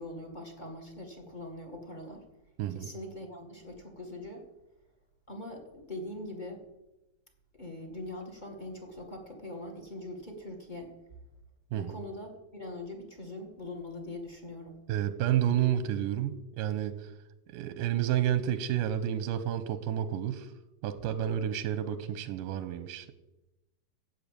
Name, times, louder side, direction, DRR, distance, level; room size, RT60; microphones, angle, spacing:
voice 1, 0.0-2.2 2.7-4.4 5.3-6.6 7.5-10.9 11.7-14.8, left 1 dB, 25° left, 3 dB, 1.0 m, -42 dB
voice 2, 2.6-2.9 11.7-12.0 14.9-17.0 17.5-20.5 20.8-23.1, right 11 dB, 80° right, 12 dB, 2.1 m, -30 dB
16.5 x 6.5 x 8.8 m, 0.96 s
omnidirectional pair, 4.5 m